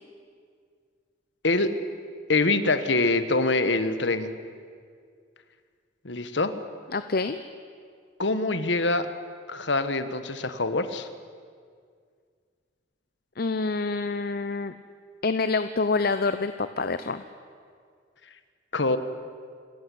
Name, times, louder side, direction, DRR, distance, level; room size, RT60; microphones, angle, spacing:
voice 1, 2.3-4.4 6.0-6.5 8.2-9.1 9.5-11.1 18.7-19.0, left 2 dB, 70° left, 11 dB, 1.4 m, -24 dB
voice 2, 6.9-7.4 13.4-14.7 15.2-17.2, left 3 dB, 50° left, 11 dB, 0.7 m, -27 dB
27.0 x 14.5 x 10.0 m, 2.1 s
head